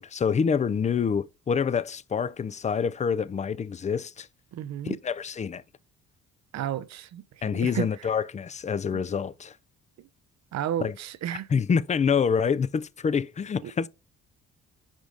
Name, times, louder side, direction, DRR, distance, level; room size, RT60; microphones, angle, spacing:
voice 1, 0.0-4.3 4.8-5.6 7.4-9.6 10.8-11.0 11.5-13.9, left 6 dB, 25° left, 0.4 m, -26 dB
voice 2, 4.5-5.0 6.5-7.2 7.6-7.9 8.9-9.0 10.0-10.1 10.5-11.5 13.6-13.9, right 10 dB, 60° right, 0.6 m, -32 dB
5.1 x 5.0 x 3.8 m
cardioid pair, 90°, 30 cm